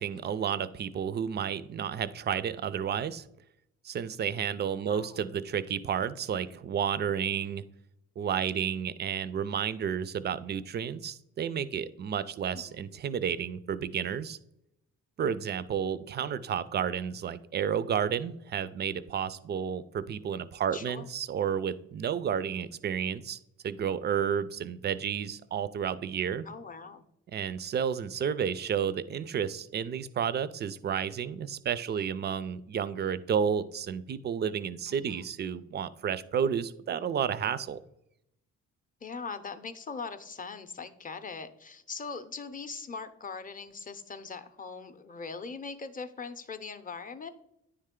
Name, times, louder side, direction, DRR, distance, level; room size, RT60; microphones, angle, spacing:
voice 1, 0.0-3.3 3.8-7.6 8.2-14.4 15.2-23.4 23.6-26.4 27.3-37.8, right 8 dB, 35° right, 16 dB, 0.4 m, -31 dB
voice 2, 4.9-5.3 12.5-12.8 20.7-21.1 26.4-27.0 31.7-32.1 34.9-35.3 39.0-47.3, left 4 dB, 30° left, 9 dB, 0.6 m, -41 dB
9.7 x 3.3 x 3.6 m, 0.81 s
cardioid pair, 90°, 30 cm